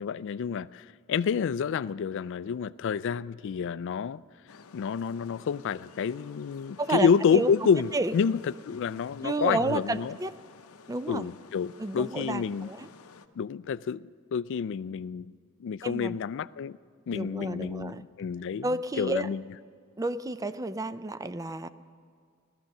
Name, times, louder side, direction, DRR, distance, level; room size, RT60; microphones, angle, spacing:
voice 1, 0.0-4.2 4.7-10.1 11.1-12.7 13.4-16.8 17.1-18.7 19.0-19.4, left 6 dB, 60° left, 0.3 m, -29 dB
sound 1, 4.5-13.3, left 5 dB, 85° left, 0.7 m, -52 dB
voice 2, 6.8-7.5 7.9-8.1 9.2-10.3 10.9-11.3 11.8-12.9 15.8-16.2 17.1-18.0 18.6-19.3 20.0-21.7, right 2 dB, 15° right, 0.4 m, -31 dB
16.0 x 13.0 x 6.6 m
head